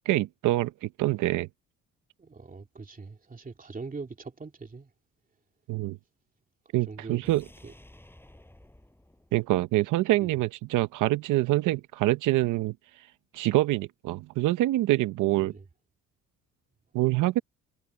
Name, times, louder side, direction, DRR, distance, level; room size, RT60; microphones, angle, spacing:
voice 1, 0.1-1.5 5.7-6.0 6.7-7.4 9.3-13.1 13.3-15.5 16.9-17.4, right 17 dB, 90° right, 0.7 m, -25 dB
voice 2, 2.2-4.9 6.7-7.2 7.6-7.7 10.2-10.3 15.5-15.6, right 4 dB, 30° right, 2.8 m, -42 dB
sound 1, 7.2-10.4 10.7-10.8, left 1 dB, 5° left, 7.1 m, -54 dB
cardioid pair, 90°, 30 cm